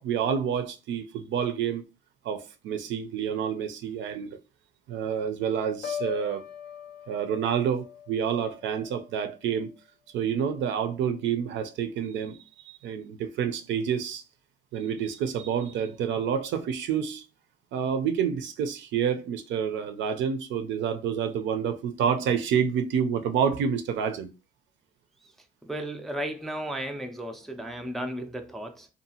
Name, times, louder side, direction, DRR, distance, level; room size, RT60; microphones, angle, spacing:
voice 1, 0.0-1.8 2.2-4.4 4.9-6.4 7.1-9.7 10.1-12.4 12.6-14.2 14.7-17.2 17.7-24.3, right 7 dB, 65° right, 0.5 m, -28 dB
Piano, 5.8-9.8 10.2-10.6, left 8 dB, 55° left, 0.5 m, -41 dB
voice 2, 25.6-28.9, right 1 dB, ahead, 0.3 m, -34 dB
2.7 x 2.4 x 2.7 m
cardioid pair, 105°, 21 cm